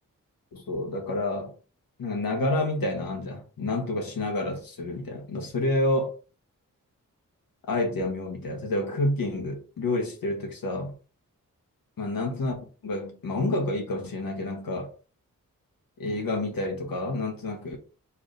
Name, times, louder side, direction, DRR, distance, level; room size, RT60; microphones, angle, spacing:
voice 1, 0.5-1.5 2.0-6.1 7.7-10.9 12.0-14.9 16.0-17.8, left 2 dB, 85° left, 1.2 m, -29 dB
4.6 x 3.2 x 2.6 m
cardioid pair, 65°, 34 cm